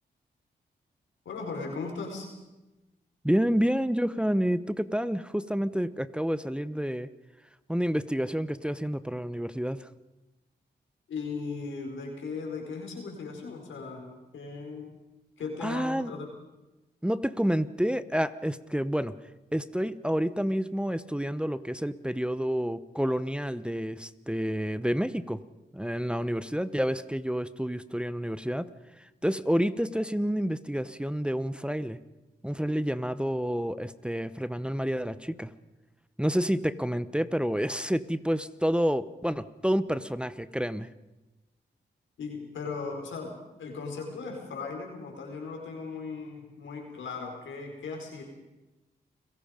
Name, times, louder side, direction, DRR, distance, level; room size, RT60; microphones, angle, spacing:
voice 1, 1.2-2.4 11.1-15.0 15.4-16.3 42.2-48.2, left 4 dB, 85° left, 1 dB, 4.7 m, -37 dB
voice 2, 3.2-7.1 7.7-9.9 15.6-16.1 17.0-19.2 19.5-25.4 25.7-28.7 29.0-32.0 32.4-35.5 36.2-40.9, equal, 5° right, 13 dB, 0.9 m, -29 dB
29.5 x 17.0 x 5.2 m, 1.1 s
cardioid pair, 55°, 19 cm